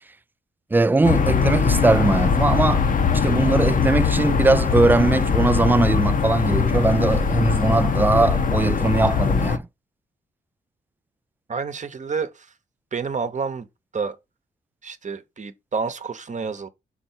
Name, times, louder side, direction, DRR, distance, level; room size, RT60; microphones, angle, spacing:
voice 1, 0.7-2.8 3.1-9.6, right 3 dB, 10° right, 0.3 m, -20 dB
sound 1, 1.0-9.6, left 6 dB, 50° left, 0.8 m, -21 dB
voice 2, 11.5-12.5 12.9-13.7 13.9-14.2 14.8-16.7, right 5 dB, 45° right, 0.9 m, -29 dB
5.4 x 4.3 x 4.5 m
cardioid pair, 65°, 18 cm